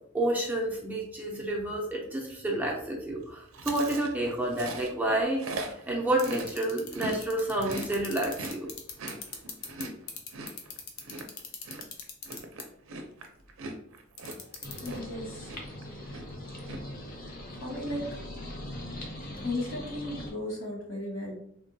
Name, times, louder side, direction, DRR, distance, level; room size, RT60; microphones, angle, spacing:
voice 1, 0.1-8.7, right 1 dB, 10° right, -2 dB, 0.4 m, -30 dB
Chewing mastication, 3.5-7.2 7.5-15.2 15.5-15.8 16.1-16.8, right 2 dB, 75° right, 0.5 m, -40 dB
sound 1, 6.2-9.8 10.1-12.6 14.2-14.9, left 8 dB, 85° left, 0.6 m, -38 dB
sound 2, 14.6-20.3, left 1 dB, 45° left, 0.7 m, -41 dB
voice 2, 14.8-15.6 17.6-18.0 19.4-21.3, left 1 dB, 65° left, -2 dB, 1.2 m, -35 dB
3.5 x 2.2 x 2.6 m, 0.69 s
head